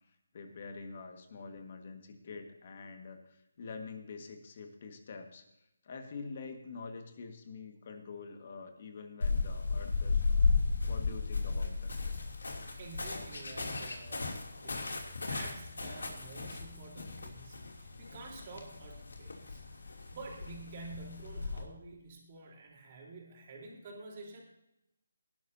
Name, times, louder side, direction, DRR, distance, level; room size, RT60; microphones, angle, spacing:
voice 1, 0.3-5.4 5.8-10.5 10.9-12.0, left 4 dB, 40° left, 5 dB, 1.8 m, -46 dB
sound 1, 9.2-21.6, left 4 dB, 85° left, 2.9 m, -35 dB
voice 2, 12.8-14.3 14.6-24.4, right 3 dB, 35° right, -1 dB, 3.9 m, -49 dB
18.5 x 11.5 x 2.8 m, 0.85 s
hypercardioid pair, 165°, 0 cm